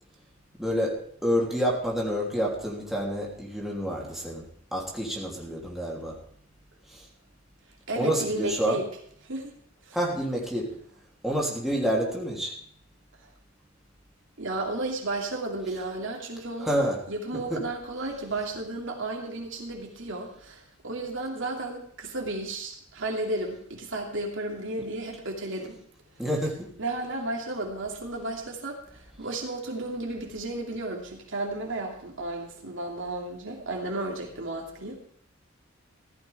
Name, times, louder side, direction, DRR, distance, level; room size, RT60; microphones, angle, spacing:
voice 1, 0.6-1.0 1.2-4.4 4.7-6.2 6.9-7.0 8.0-8.8 9.9-10.7 11.2-12.5 16.6-17.0 17.5-17.6 26.2-26.7, equal, ahead, -3 dB, 3.1 m, -28 dB
voice 2, 7.9-8.9 9.2-9.5 9.8-10.0 14.4-16.8 17.1-25.8 26.8-35.0, right 2 dB, 65° right, 1 dB, 2.6 m, -33 dB
15.0 x 13.5 x 3.5 m, 0.64 s
head